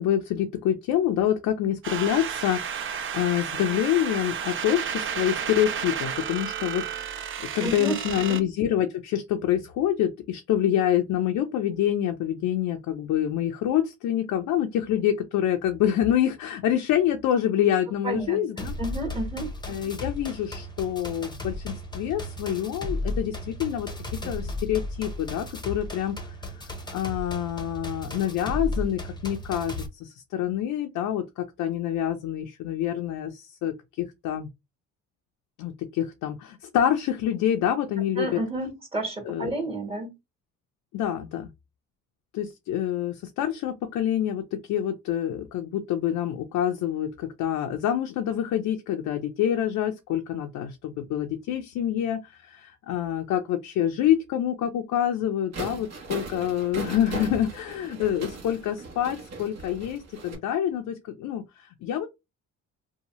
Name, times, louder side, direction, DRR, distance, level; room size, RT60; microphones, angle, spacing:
voice 1, 0.0-18.7 19.7-23.9 24.3-26.2 26.9-34.5 35.6-38.4 39.3-39.5 40.9-41.5 42.3-62.1, left 10 dB, 80° left, 0.5 m, -27 dB
sound 1, 1.8-8.4, right 8 dB, 45° right, 0.4 m, -32 dB
voice 2, 7.6-8.4 18.0-19.5 38.1-40.1, right 2 dB, 20° right, 1.3 m, -31 dB
sound 2, 18.6-29.9, left 1 dB, 15° left, 0.7 m, -35 dB
sound 3, 55.5-60.4, right 3 dB, 60° right, 1.0 m, -38 dB
2.7 x 2.2 x 3.0 m
cardioid pair, 90°, 30 cm